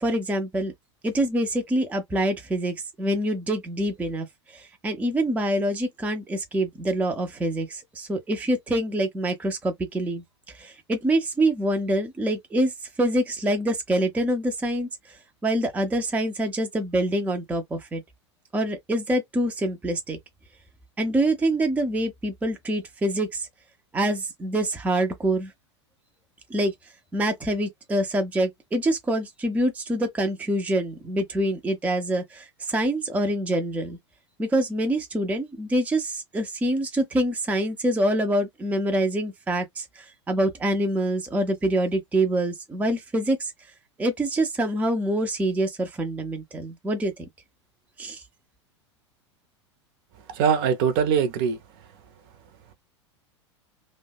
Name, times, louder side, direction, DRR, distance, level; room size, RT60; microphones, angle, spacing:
voice 1, 0.0-0.7 1.0-4.3 4.5-10.2 10.5-12.7 13.0-14.9 15.4-18.0 18.5-20.2 21.0-23.5 23.9-25.5 26.5-26.7 27.1-34.0 34.4-43.5 44.0-47.2 48.0-48.2, right 1 dB, 10° right, 0.5 m, -25 dB
voice 2, 50.3-51.6, right 7 dB, 45° right, 0.7 m, -22 dB
2.6 x 2.1 x 2.2 m
figure-of-eight pair, 85°, 15 cm